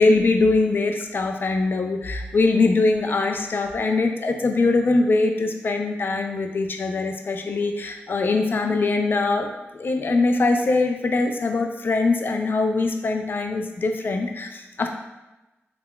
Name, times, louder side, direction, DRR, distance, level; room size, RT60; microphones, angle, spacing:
voice 1, 0.0-14.9, left 3 dB, 50° left, 4 dB, 0.3 m, -22 dB
3.5 x 2.3 x 2.3 m, 1.0 s
cardioid pair, 70°, 5 cm